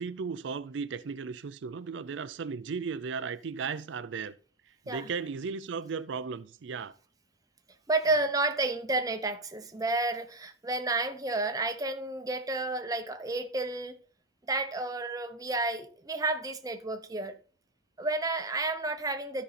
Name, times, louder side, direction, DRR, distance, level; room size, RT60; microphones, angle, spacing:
voice 1, 0.0-4.3 4.9-6.9, right 5 dB, 70° right, 0.4 m, -36 dB
voice 2, 7.9-14.0 14.5-17.4 18.0-19.4, right 2 dB, 20° right, 0.7 m, -31 dB
12.5 x 5.3 x 4.2 m
head